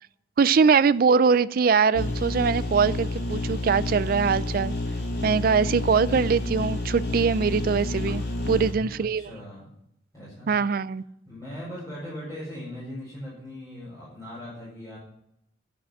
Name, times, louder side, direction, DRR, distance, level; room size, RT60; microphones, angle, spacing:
voice 1, 0.4-4.7 5.2-9.3 10.5-11.0, right 5 dB, 55° right, 0.4 m, -22 dB
sound 1, 1.9-8.7, left 2 dB, 65° left, 3.4 m, -29 dB
voice 2, 8.3-9.7 10.1-10.5 11.3-15.0, equal, 20° left, 5.0 m, -40 dB
11.0 x 6.1 x 9.0 m
head